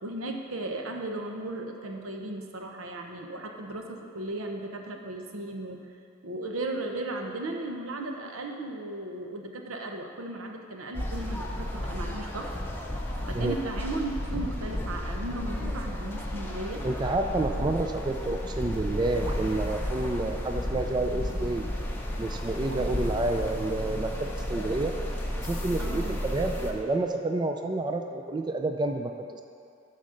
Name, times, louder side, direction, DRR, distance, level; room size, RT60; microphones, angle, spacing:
voice 1, 0.0-5.8 6.2-12.5 13.3-16.8 22.7-22.9 25.8-26.2, right 2 dB, 85° right, 2 dB, 0.9 m, -36 dB
sound 1, 10.9-26.7, left 1 dB, 10° left, 0.8 m, -33 dB
voice 2, 16.8-21.7 22.2-24.9 25.4-29.4, right 2 dB, 20° right, 5 dB, 0.3 m, -29 dB
11.0 x 4.2 x 6.4 m, 2.5 s
head